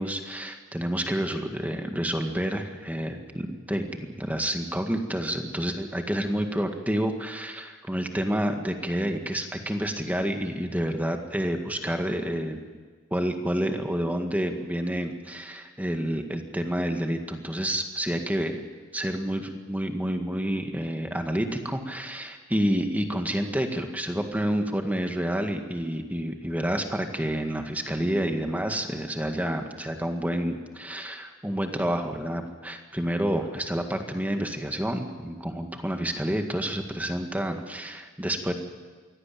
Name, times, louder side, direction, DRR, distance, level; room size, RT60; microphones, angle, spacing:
voice 1, 0.0-12.6 13.1-18.6 18.9-38.5, equal, 10° right, 5 dB, 2.0 m, -29 dB
23.5 x 17.0 x 8.6 m, 1.5 s
head